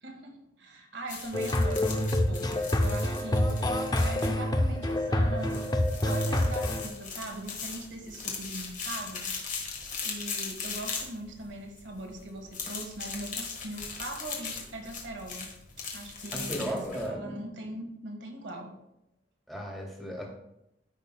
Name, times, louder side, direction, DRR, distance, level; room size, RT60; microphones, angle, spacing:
voice 1, 0.0-9.7 10.0-15.5 15.9-18.8, right 1 dB, 80° right, 2 dB, 1.5 m, -41 dB
sound 1, 1.1-17.1, left 5 dB, 45° left, 1.4 m, -39 dB
sound 2, 1.3-6.9, left 1 dB, 20° left, 0.5 m, -27 dB
voice 2, 16.3-17.4 19.5-20.3, equal, ahead, -2 dB, 1.8 m, -35 dB
13.0 x 5.5 x 2.2 m, 0.84 s
head